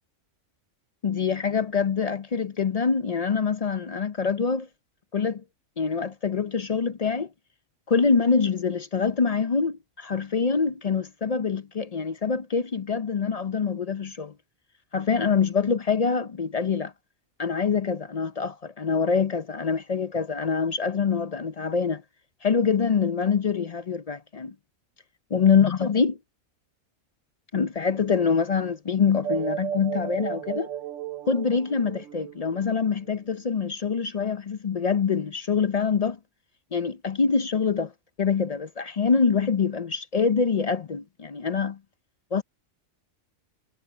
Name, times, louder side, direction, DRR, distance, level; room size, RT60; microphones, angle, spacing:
voice 1, 1.0-4.7 5.1-5.4 5.8-7.3 7.9-14.3 14.9-16.9 17.4-22.0 22.4-24.5 25.3-26.2 27.5-30.7 31.3-36.2 36.7-37.9 38.2-41.8 42.3-42.4, left 5 dB, 50° left, 0.4 m, -25 dB
sound 1, 29.2-33.1, right 9 dB, 70° right, 1.0 m, -34 dB
omnidirectional pair, 1.4 m